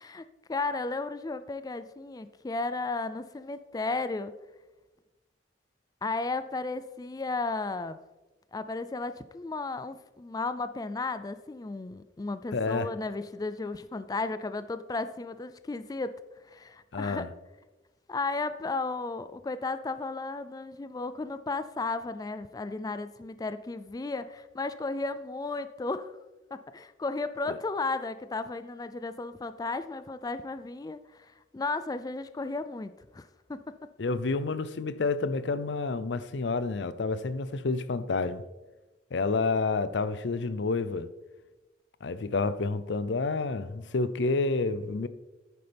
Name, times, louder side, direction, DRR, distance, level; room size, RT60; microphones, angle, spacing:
voice 1, 0.0-4.3 6.0-8.0 8.5-16.2 16.5-17.3 18.1-26.2 26.5-33.6, left 3 dB, 20° left, 0.4 m, -34 dB
voice 2, 12.5-12.9 16.9-17.3 27.5-27.6 34.0-38.4 39.1-41.1 42.0-45.1, left 3 dB, 85° left, 0.6 m, -29 dB
11.0 x 9.5 x 3.4 m
head